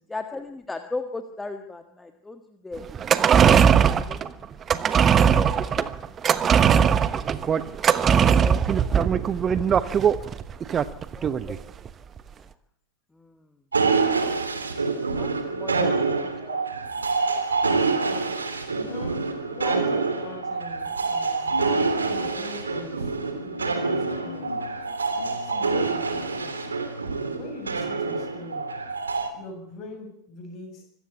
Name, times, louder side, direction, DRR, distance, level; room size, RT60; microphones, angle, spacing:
voice 1, 0.1-2.8 3.4-4.3 5.3-6.9 8.0-9.1 10.7-10.8 11.1-11.7 12.3-12.4 13.1-13.4 15.1-15.9 16.4-16.6 19.6-19.8, left 3 dB, 10° left, 7 dB, 1.6 m, -37 dB
sound 1, 2.9-11.6 11.9-12.0, right 7 dB, 25° right, 1.2 m, -20 dB
sound 2, 13.7-29.3, right 4 dB, 75° right, 3.0 m, -26 dB
sound 3, 15.2-29.9, left 4 dB, 75° left, 3.0 m, -43 dB
voice 2, 17.7-18.3 18.7-19.1 19.5-21.6 22.0-24.5 25.4-26.5 27.3-28.7 29.3-30.8, left 2 dB, 35° left, 6 dB, 7.9 m, -42 dB
25.5 x 15.0 x 8.6 m, 0.74 s
figure-of-eight pair, 90°, 0 cm